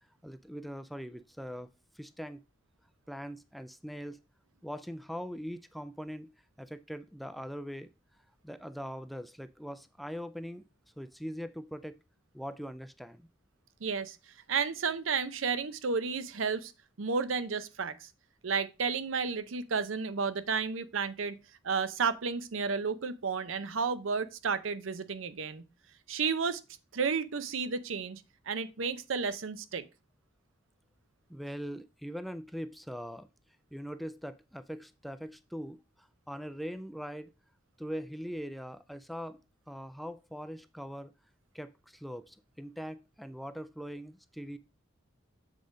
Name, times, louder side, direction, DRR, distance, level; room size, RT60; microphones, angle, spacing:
voice 1, 0.2-1.7 1.9-2.4 3.1-4.2 4.6-6.3 6.6-7.9 8.4-10.6 11.0-12.0 12.3-13.3 31.3-33.3 33.7-37.3 37.8-39.4 39.7-41.1 41.5-44.6, equal, ahead, 0.3 m, -41 dB
voice 2, 13.8-14.2 14.5-16.7 17.0-18.1 18.4-21.4 21.6-25.6 26.1-26.6 26.9-29.8, right 5 dB, 85° right, 0.7 m, -32 dB
7.4 x 3.9 x 4.9 m
head